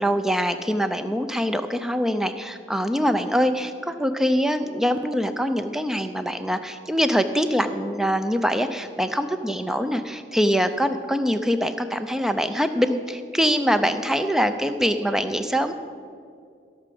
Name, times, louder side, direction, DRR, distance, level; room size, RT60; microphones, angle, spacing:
voice 1, 0.0-15.7, equal, ahead, 9 dB, 0.5 m, -24 dB
15.5 x 6.1 x 7.5 m, 2.3 s
head